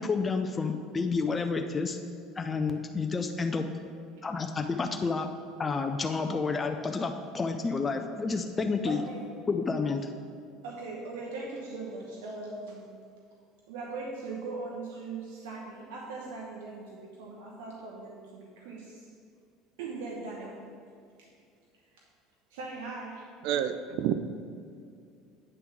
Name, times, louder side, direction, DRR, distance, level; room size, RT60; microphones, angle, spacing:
voice 1, 0.0-2.0 2.4-3.7 4.2-5.3 5.6-9.0 9.5-10.1, left 4 dB, 25° left, 4 dB, 0.5 m, -30 dB
voice 2, 8.9-9.2 10.6-13.0 13.7-19.1 19.8-20.6 21.2-21.3 21.8-21.9 22.5-23.6, right 3 dB, 80° right, -2 dB, 1.0 m, -40 dB
voice 3, 23.4-24.1, right 10 dB, 65° right, 10 dB, 0.4 m, -28 dB
8.5 x 3.4 x 6.0 m, 2.3 s
supercardioid pair, 90°, 0 cm